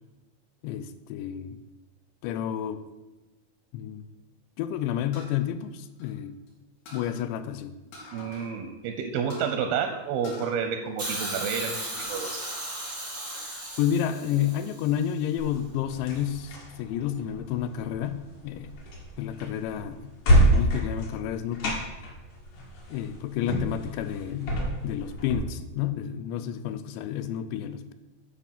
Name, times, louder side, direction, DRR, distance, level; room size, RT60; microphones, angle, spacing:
voice 1, 0.6-1.6 2.2-2.8 3.7-4.1 4.6-6.4 6.9-7.7 13.8-18.7 19.2-20.1 20.4-21.8 22.9-27.9, left 10 dB, 85° left, 12 dB, 2.6 m, -30 dB
sound 1, 5.1-6.5 6.9-7.2 7.9-8.5 8.8-8.9 9.3-9.6 10.2-11.4 11.7-12.2 12.7-13.4, left 2 dB, 65° left, 4.2 m, -46 dB
voice 2, 8.1-12.5, right 7 dB, 80° right, 7 dB, 2.2 m, -30 dB
Hiss, 11.0-15.1 16.1-16.2, right 1 dB, 20° right, 0.7 m, -36 dB
sound 2, 15.4-25.4, equal, 50° left, 2.4 m, -28 dB
10.0 x 4.6 x 7.2 m, 1.1 s
omnidirectional pair, 5.2 m